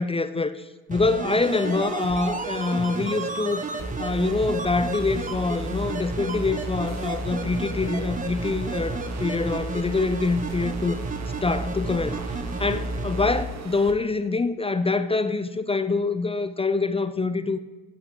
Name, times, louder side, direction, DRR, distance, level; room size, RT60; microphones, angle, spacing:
voice 1, 0.0-3.6 4.0-11.0 11.4-12.2 12.6-17.6, left 3 dB, 15° left, 0.4 m, -25 dB
sound 1, 0.9-13.4 13.7-13.8, right 2 dB, 20° right, 1.1 m, -31 dB
sound 2, 1.4-13.9, right 7 dB, 40° right, 1.1 m, -41 dB
8.9 x 7.7 x 3.8 m
hypercardioid pair, 50°, 41 cm